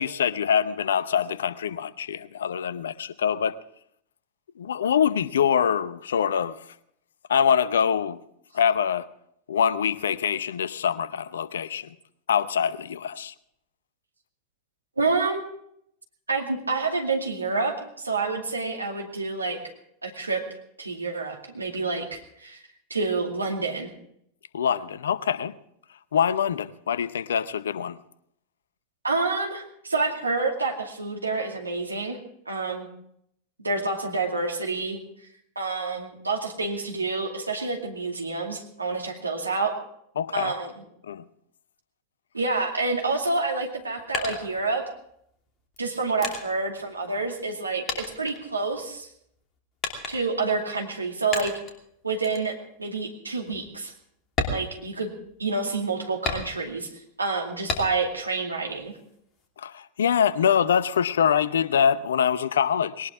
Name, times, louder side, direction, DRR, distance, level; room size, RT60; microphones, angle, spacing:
voice 1, 0.0-3.6 4.6-6.6 7.3-8.2 8.5-9.1 9.5-11.9 12.3-13.3 24.5-25.6 26.1-28.0 40.2-40.5 41.1-41.2 59.6-63.1, left 8 dB, 65° left, 0.7 m, -24 dB
voice 2, 15.0-15.4 16.3-19.6 20.0-20.4 20.8-22.6 22.9-23.9 29.0-32.2 32.5-32.9 33.6-35.0 35.6-39.7 40.3-40.7 42.3-44.9 45.8-49.1 50.1-51.5 52.0-53.9 54.5-55.1 55.4-56.9 57.2-58.9, right 3 dB, 80° right, 2.4 m, -28 dB
sound 1, 43.6-45.1 45.7-47.6 47.9-49.0 49.8-50.5 51.3-51.8 52.2-52.5 52.9-53.0 53.5-53.6 54.3-55.5 56.3-56.9 57.7-58.2 58.6-59.5, left 3 dB, 25° left, 2.8 m, -33 dB
20.0 x 18.5 x 3.7 m
figure-of-eight pair, 90°, 0 cm